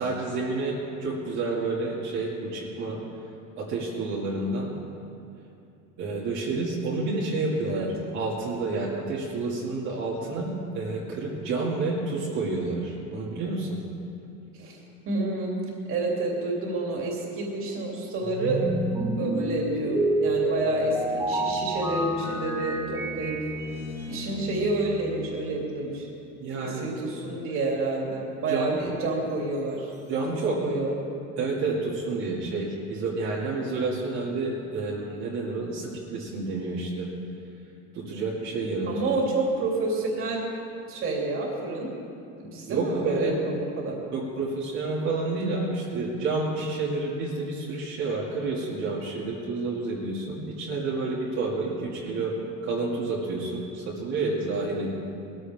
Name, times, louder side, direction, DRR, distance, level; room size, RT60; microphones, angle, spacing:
voice 1, 0.0-3.0 3.6-4.7 6.0-7.9 8.1-13.8 26.4-26.9 28.5-28.8 30.0-30.6 31.4-37.1 37.9-38.9 42.7-43.4 44.1-52.3 52.6-54.9, right 3 dB, 55° right, -6 dB, 2.5 m, -29 dB
voice 2, 15.0-15.6 15.9-23.3 24.1-26.1 26.6-29.9 30.6-30.9 38.9-40.4 40.9-41.9 42.4-44.0, right 2 dB, 40° right, -2 dB, 3.0 m, -29 dB
sound 1, 18.2-25.5, right 1 dB, 10° right, 1.5 m, -29 dB
20.0 x 14.5 x 3.6 m, 2.6 s
cardioid pair, 155°, 32 cm